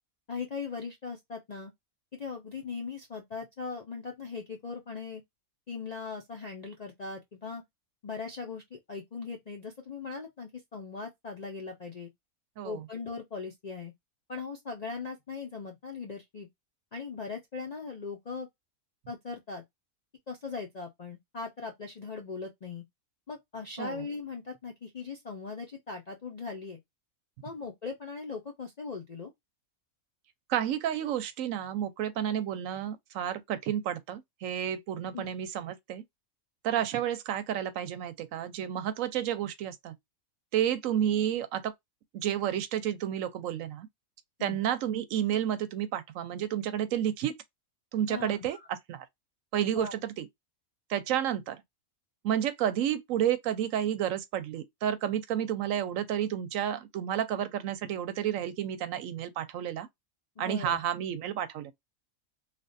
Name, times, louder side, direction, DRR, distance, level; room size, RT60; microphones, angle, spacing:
voice 1, 0.3-1.7 2.1-5.2 5.7-7.6 8.0-12.1 12.6-13.9 14.3-16.5 16.9-18.5 19.1-19.6 20.3-22.8 23.3-26.8 27.4-29.3 35.1-35.3 44.4-44.6 48.1-48.7 49.7-49.9 60.4-60.8, left 4 dB, 55° left, 0.4 m, -39 dB
voice 2, 30.5-36.0 36.6-39.9 40.5-41.7 42.1-43.9 44.4-47.3 47.9-49.1 49.5-50.3 50.9-51.6 52.2-59.9 60.4-61.7, right 10 dB, 70° right, 0.9 m, -31 dB
3.3 x 2.3 x 2.5 m
omnidirectional pair, 1.5 m